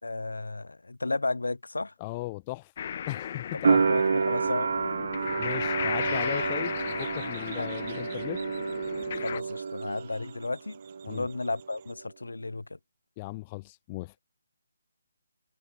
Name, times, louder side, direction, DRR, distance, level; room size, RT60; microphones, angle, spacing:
voice 1, 0.0-1.9 3.5-4.7 7.5-7.7 9.1-12.8, left 2 dB, 85° left, 3.2 m, -33 dB
voice 2, 2.0-2.7 3.1-3.8 5.4-8.4 11.1-11.3 13.2-14.1, left 21 dB, 25° left, 1.2 m, -37 dB
sound 1, 2.8-9.4, left 8 dB, 45° left, 2.9 m, -35 dB
sound 2, 3.6-10.4 10.7-11.6, right 5 dB, 60° right, 1.1 m, -29 dB
sound 3, 6.0-11.9, right 10 dB, 35° right, 5.6 m, -51 dB
figure-of-eight pair, 155°, 0 cm